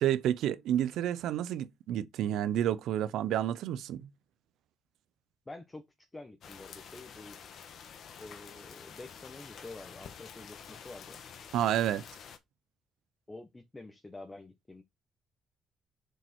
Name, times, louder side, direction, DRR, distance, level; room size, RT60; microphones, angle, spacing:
voice 1, 0.0-4.1 11.5-12.0, right 11 dB, 85° right, 0.7 m, -30 dB
voice 2, 5.4-7.4 8.2-11.2 13.3-14.8, left 2 dB, 20° left, 1.4 m, -48 dB
sound 1, 6.4-12.4, left 7 dB, 65° left, 1.4 m, -49 dB
6.8 x 4.5 x 4.5 m
cardioid pair, 90°, 0 cm